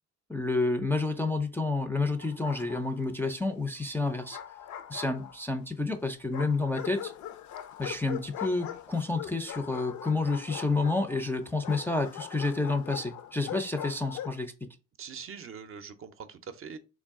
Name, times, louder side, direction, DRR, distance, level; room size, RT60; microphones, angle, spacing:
voice 1, 0.3-4.4 4.9-7.1 7.8-14.5, left 3 dB, 5° left, 0.4 m, -29 dB
Bark, 2.2-3.1 4.0-5.6 6.3-14.4, left 10 dB, 70° left, 0.5 m, -41 dB
voice 2, 15.0-16.8, right 6 dB, 45° right, 0.5 m, -43 dB
3.5 x 2.3 x 3.5 m
cardioid pair, 90°, 30 cm